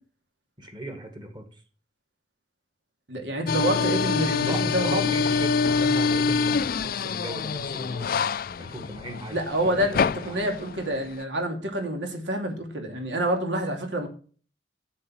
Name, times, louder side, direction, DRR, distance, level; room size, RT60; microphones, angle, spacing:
voice 1, 0.6-1.6 4.1-8.3 8.6-10.4, right 1 dB, 25° right, 6 dB, 1.9 m, -38 dB
voice 2, 3.1-5.2 9.3-14.1, right 1 dB, 80° right, 3 dB, 2.7 m, -27 dB
sound 1, 3.5-11.2, left 5 dB, 55° left, 0.4 m, -26 dB
7.6 x 6.9 x 5.6 m, 0.40 s
head